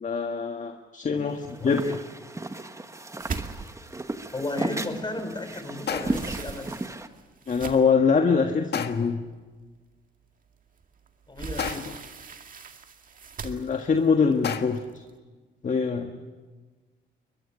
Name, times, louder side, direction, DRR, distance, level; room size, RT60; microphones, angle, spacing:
voice 1, 0.0-1.8 7.5-9.2 13.4-15.0 15.6-16.2, left 5 dB, 40° left, 5 dB, 1.7 m, -24 dB
voice 2, 1.1-1.9 4.3-6.7 11.3-11.9, left 2 dB, 20° left, 8 dB, 5.0 m, -35 dB
sound 1, 1.3-7.1, right 2 dB, 15° right, 1.6 m, -35 dB
sound 2, 3.2-5.4 5.7-8.1 8.7-8.8 9.3-9.4 10.8-15.1, right 5 dB, 45° right, 2.1 m, -39 dB
sound 3, 5.9-6.4 8.7-9.2 11.6-12.1 14.4-15.0, left 7 dB, 55° left, 1.7 m, -32 dB
22.0 x 22.0 x 8.9 m, 1.3 s
cardioid pair, 90°, 20 cm